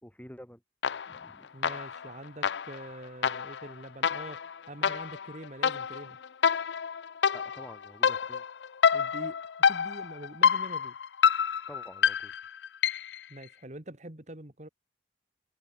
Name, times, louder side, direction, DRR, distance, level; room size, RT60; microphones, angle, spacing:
voice 1, 0.0-0.6 1.1-1.5 7.3-8.4 11.7-12.3, equal, 10° left, 4.9 m, -48 dB
sound 1, 0.8-1.3 1.6-13.2, left 7 dB, 80° left, 0.5 m, -28 dB
voice 2, 1.5-6.2 8.9-9.4 9.7-11.0 13.3-14.7, right 1 dB, 40° right, 2.2 m, -44 dB
open air
head